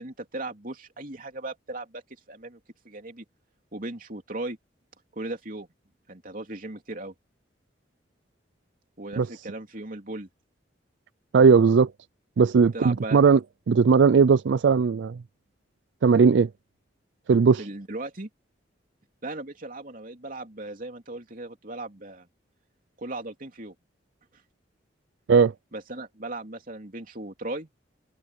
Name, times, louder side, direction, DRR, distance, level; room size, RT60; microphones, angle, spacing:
voice 1, 0.0-2.0 2.3-3.2 3.7-4.6 5.1-5.7 6.1-7.1 9.0-10.3 12.7-13.2 17.6-18.3 19.2-22.3 23.0-23.7 25.7-27.7, right 2 dB, 50° right, 3.3 m, -37 dB
voice 2, 11.3-11.9 12.4-13.4 13.7-15.2 16.0-16.5 17.3-17.6 25.3-25.5, right 5 dB, 75° right, 0.4 m, -18 dB
head